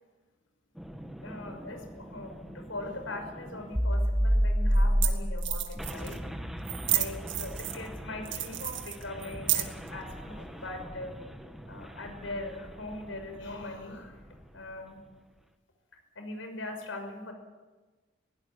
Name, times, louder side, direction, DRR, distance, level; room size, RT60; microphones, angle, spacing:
sound 1, 0.8-13.5, equal, ahead, 1.3 m, -32 dB
voice 1, 1.2-6.2 6.9-11.2 11.7-14.2 14.5-15.0 16.2-17.3, left 2 dB, 80° left, 5 dB, 5.8 m, -41 dB
sound 2, 3.9-4.0 4.8-4.9 5.0-5.1 5.4-6.2 6.6-7.9 8.2-9.9, right 14 dB, 70° right, 2.2 m, -31 dB
21.5 x 17.5 x 9.9 m, 1.3 s
head